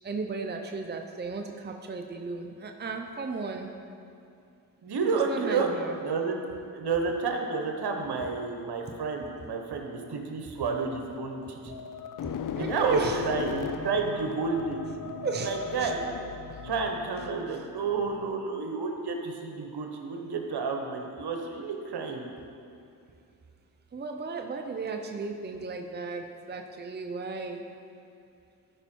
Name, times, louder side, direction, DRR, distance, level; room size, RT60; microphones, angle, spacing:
voice 1, 0.0-3.7 5.3-6.0 12.6-13.5 15.2-15.9 23.9-27.7, right 4 dB, 25° right, 4 dB, 0.7 m, -35 dB
voice 2, 4.8-5.7 6.0-6.4 6.7-11.6 12.5-14.8 15.4-16.0 16.6-22.3, right 4 dB, 60° right, 3 dB, 1.4 m, -30 dB
sound 1, 10.5-18.3, left 7 dB, 45° left, 0.6 m, -38 dB
13.0 x 5.4 x 4.6 m, 2.5 s
supercardioid pair, 55°, 43 cm